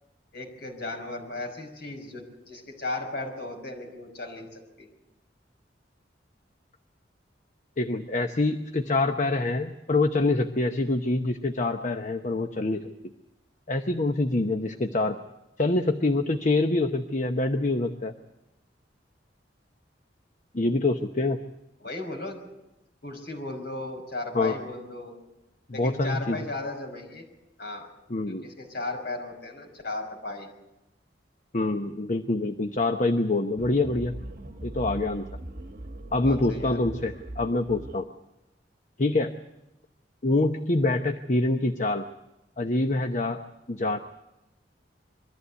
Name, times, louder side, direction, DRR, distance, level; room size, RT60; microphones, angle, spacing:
voice 1, 0.3-4.9 21.8-22.4 23.0-25.1 25.7-27.2 27.6-27.9 28.3-30.5 36.2-36.8, left 2 dB, 65° left, 3 dB, 5.6 m, -36 dB
voice 2, 7.8-13.1 13.7-15.2 15.6-18.1 20.5-21.4 24.3-24.6 25.7-26.4 28.1-28.5 31.5-34.1 34.6-35.3 36.1-38.1 39.0-39.3 40.2-42.0 42.6-43.4 43.7-44.0, left 2 dB, 45° left, 6 dB, 0.9 m, -25 dB
sound 1, 33.6-38.0, right 1 dB, 55° right, 1.3 m, -40 dB
23.0 x 14.5 x 8.2 m, 0.94 s
head